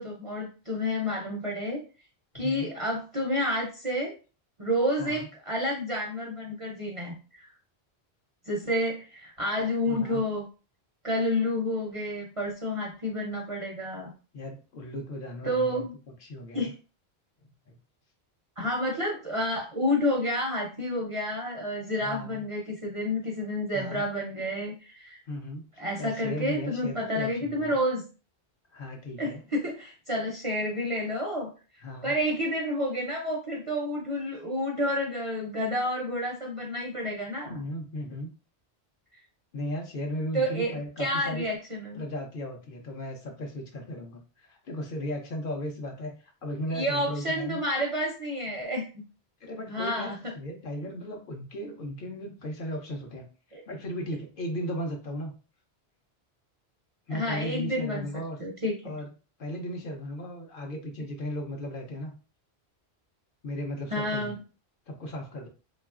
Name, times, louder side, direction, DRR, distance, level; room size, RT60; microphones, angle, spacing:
voice 1, 0.0-1.8 2.3-4.1 4.6-7.5 8.5-10.5 11.0-14.1 15.4-15.9 16.5-16.7 18.6-25.2 25.8-28.0 29.2-31.5 32.0-37.5 40.3-42.0 46.7-48.9 49.7-50.2 53.5-53.6 57.1-58.0 58.4-58.9 63.9-64.4, left 1 dB, 45° right, -1 dB, 0.4 m, -30 dB
voice 2, 2.3-2.7 5.0-5.3 9.9-10.2 14.3-15.8 16.2-16.7 17.7-17.8 22.0-22.5 23.7-24.0 25.3-27.7 28.7-29.4 31.8-32.1 37.4-38.3 39.5-41.5 41.9-47.6 49.4-53.2 53.7-55.3 57.1-58.4 58.8-59.1 59.4-62.1 63.4-64.3 64.9-65.5, equal, 60° left, 2 dB, 0.7 m, -36 dB
2.9 x 2.3 x 2.3 m, 0.34 s
omnidirectional pair, 1.1 m